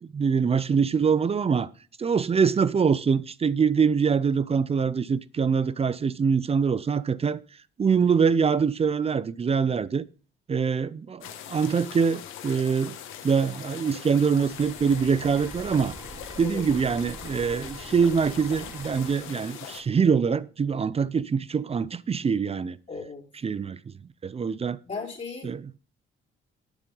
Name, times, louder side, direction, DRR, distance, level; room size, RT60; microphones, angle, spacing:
voice 1, 0.0-1.7 2.0-7.4 7.8-10.0 10.5-12.9 13.2-15.9 16.4-22.8 23.4-23.9 24.2-24.8 25.4-25.6, right 6 dB, 30° right, 0.5 m, -24 dB
sound 1, 11.2-19.8, left 10 dB, 90° left, 1.4 m, -41 dB
sound 2, 14.2-19.1, right 2 dB, 15° right, 1.5 m, -44 dB
voice 2, 22.9-23.2 24.9-25.5, left 4 dB, 35° left, 3.8 m, -36 dB
9.3 x 7.2 x 5.4 m
cardioid pair, 90°, 20 cm